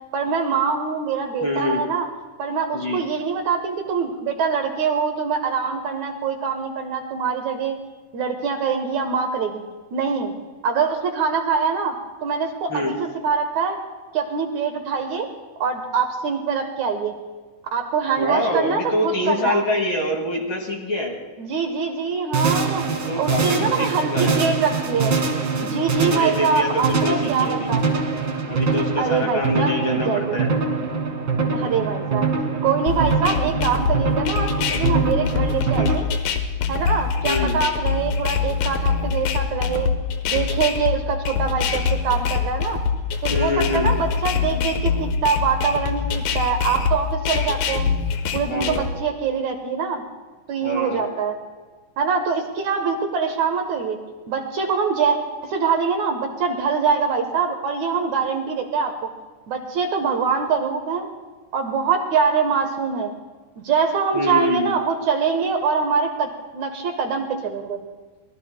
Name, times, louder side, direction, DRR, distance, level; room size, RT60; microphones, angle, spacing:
voice 1, 0.1-2.1 2.4-7.8 8.1-9.6 9.9-10.3 10.6-12.0 12.2-13.8 14.1-15.3 15.6-17.1 17.7-19.7 21.4-25.2 25.6-27.8 29.0-30.4 31.5-32.3 32.6-36.1 36.7-39.9 40.2-42.8 43.2-47.9 48.3-50.0 50.5-51.4 52.0-54.0 54.3-55.2 55.4-59.1 59.5-61.1 61.5-63.1 63.6-67.8, right 5 dB, 65° right, 4 dB, 2.3 m, -24 dB
voice 2, 1.4-1.8 2.7-3.0 12.7-12.9 18.2-21.2 23.0-24.4 26.0-27.7 28.5-30.5 37.2-37.6 43.3-43.9 48.5-48.8 50.6-51.1 64.1-64.7, left 1 dB, 40° left, 0 dB, 2.5 m, -25 dB
sound 1, 22.3-36.0, right 4 dB, 45° right, 1.7 m, -24 dB
sound 2, 32.9-48.9, left 6 dB, 85° left, 2.8 m, -24 dB
24.5 x 19.5 x 2.2 m, 1.3 s
omnidirectional pair, 3.9 m